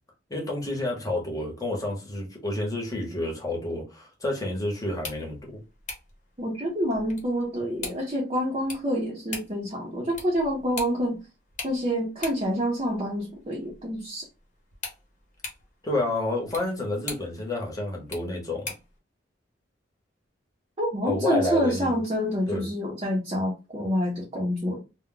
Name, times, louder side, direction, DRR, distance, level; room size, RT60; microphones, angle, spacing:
voice 1, 0.3-5.6 15.8-18.7 21.0-22.0 22.5-22.7, left 1 dB, 20° left, 1.0 m, -29 dB
sound 1, 4.8-19.0, left 4 dB, 45° left, 0.9 m, -43 dB
voice 2, 6.4-11.2 11.6-14.3 20.8-24.8, equal, 30° right, 0.7 m, -27 dB
2.2 x 2.2 x 3.8 m
head